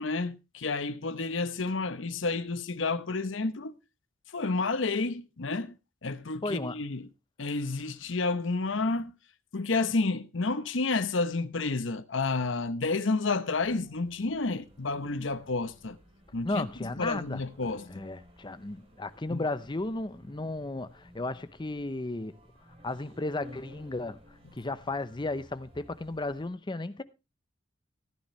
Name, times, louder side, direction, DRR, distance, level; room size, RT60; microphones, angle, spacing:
voice 1, 0.0-3.8 4.3-5.7 6.0-7.1 7.4-9.1 9.5-16.0 16.3-16.7 17.0-18.1 19.3-19.4, left 3 dB, 70° left, 0.9 m, -30 dB
voice 2, 6.4-6.8 16.4-22.4 22.8-24.2 24.5-27.0, left 2 dB, 25° left, 0.7 m, -34 dB
sound 1, 13.5-26.5, left 1 dB, 30° right, 3.7 m, -56 dB
14.5 x 10.0 x 3.2 m
head